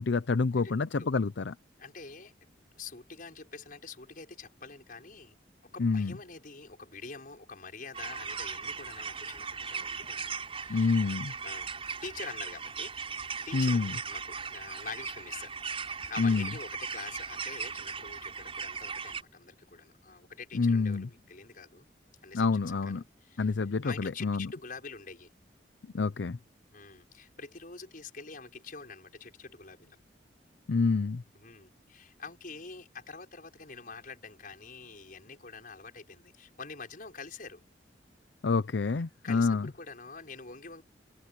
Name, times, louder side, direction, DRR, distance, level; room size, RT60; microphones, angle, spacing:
voice 1, 0.0-1.5 5.8-6.1 10.7-11.3 13.5-13.9 16.2-16.5 20.5-21.1 22.3-23.0 23.4-24.5 25.9-26.4 30.7-31.2 38.4-39.7, left 4 dB, 75° left, 0.6 m, -27 dB
voice 2, 0.6-1.1 1.8-2.3 2.8-5.3 5.7-11.0 11.4-11.7 12.0-12.9 13.5-15.5 16.1-21.9 22.2-23.5 23.8-25.3 26.7-30.0 31.3-37.6 39.2-40.8, left 4 dB, 50° left, 6.1 m, -46 dB
sound 1, 7.9-19.2, right 5 dB, 35° right, 5.9 m, -38 dB
head